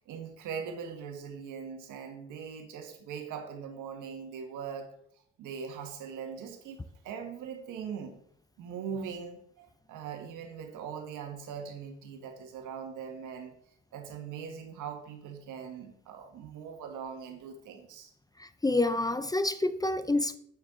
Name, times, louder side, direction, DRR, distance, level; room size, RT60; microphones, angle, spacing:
voice 1, 0.0-4.9 5.4-6.8 7.0-8.2 8.6-13.5 13.9-18.1, right 7 dB, 90° right, 1.6 m, -41 dB
voice 2, 18.4-20.4, left 2 dB, 15° left, 0.5 m, -28 dB
9.2 x 6.6 x 3.7 m
cardioid pair, 90°, 30 cm